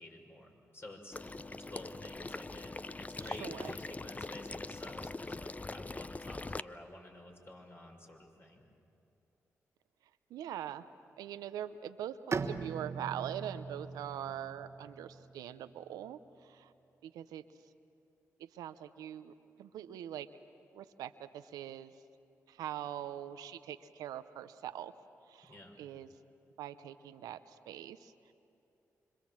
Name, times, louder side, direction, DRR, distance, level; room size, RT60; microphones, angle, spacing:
voice 1, 0.0-8.6 14.3-14.6 25.4-25.8, left 1 dB, 40° left, 1 dB, 6.3 m, -51 dB
Water / Liquid, 1.1-6.6, left 3 dB, 25° left, 0.6 m, -42 dB
voice 2, 3.2-3.7 10.3-10.8 11.2-16.7 17.0-17.4 18.4-19.3 19.6-20.3 20.7-21.9 22.5-24.9 25.3-26.1 26.6-28.3, right 10 dB, 90° right, 11 dB, 0.7 m, -43 dB
Bowed string instrument, 12.3-15.9, right 4 dB, 45° right, 1.3 m, -40 dB
26.5 x 25.0 x 7.5 m, 2.7 s
supercardioid pair, 50°, 6 cm